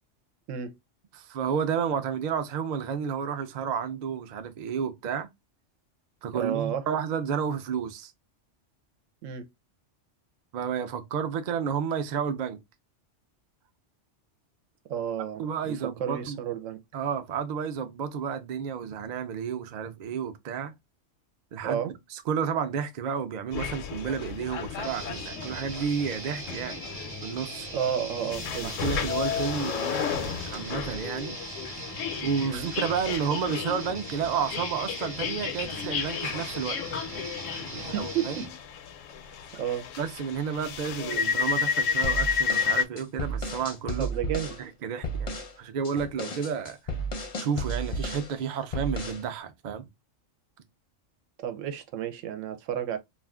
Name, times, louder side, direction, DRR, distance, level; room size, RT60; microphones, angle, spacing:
voice 1, 1.1-5.3 6.2-8.1 10.5-12.6 15.4-16.4 16.9-20.7 21.5-21.8 22.1-26.8 27.2-27.7 28.6-31.4 32.2-36.8 37.7-38.4 40.0-44.1 44.6-46.8 47.4-49.9, right 7 dB, 60° right, 0.4 m, -31 dB
voice 2, 6.3-6.8 9.2-9.5 14.9-16.8 21.6-21.9 27.7-28.7 32.5-32.7 37.7-38.5 39.5-39.9 44.0-44.6 51.4-53.0, right 9 dB, 85° right, 1.0 m, -32 dB
sound 1, 23.5-42.8, left 6 dB, 80° left, 0.9 m, -32 dB
sound 2, 24.8-38.5, right 1 dB, 30° right, 0.8 m, -40 dB
sound 3, 42.0-44.6 45.0-45.5 45.9-48.3 48.7-49.3, right 1 dB, 40° left, 0.5 m, -33 dB
2.4 x 2.3 x 3.4 m
omnidirectional pair, 1.3 m